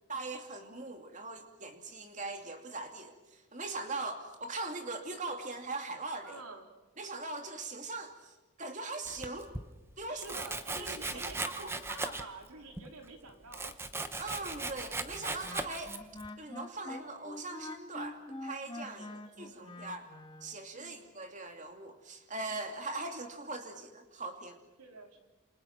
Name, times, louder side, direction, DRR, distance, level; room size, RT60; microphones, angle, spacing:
voice 1, 0.1-6.4 7.0-9.5 10.0-10.4 10.7-11.8 14.2-16.0 16.4-19.1 19.4-20.1 20.4-24.6, right 3 dB, 35° right, 5 dB, 2.7 m, -41 dB
voice 2, 6.2-6.7 10.0-13.7 19.0-19.7 20.7-21.2 24.8-25.2, right 3 dB, 85° right, 3 dB, 4.0 m, -48 dB
Domestic sounds home sounds, 9.1-9.7 10.2-12.5 12.8-16.3, right 2 dB, 10° right, 1.0 m, -38 dB
Wind instrument woodwind instrument, 15.1-20.5, left 2 dB, 20° left, 1.8 m, -45 dB
28.5 x 28.0 x 6.0 m, 1.1 s
head